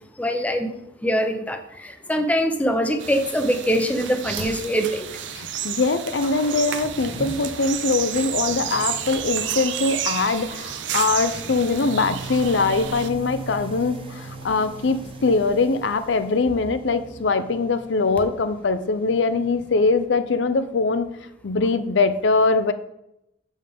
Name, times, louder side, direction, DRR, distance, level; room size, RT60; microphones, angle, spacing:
voice 1, 0.2-0.8 1.0-5.1, equal, 10° left, 5 dB, 0.6 m, -23 dB
sound 1, 2.2-20.1, right 2 dB, 30° right, 0.8 m, -40 dB
sound 2, 3.0-13.1, right 9 dB, 80° right, 0.5 m, -31 dB
voice 2, 5.3-21.1 21.4-22.7, left 3 dB, 80° left, 11 dB, 0.5 m, -22 dB
7.4 x 5.3 x 3.5 m, 0.82 s
head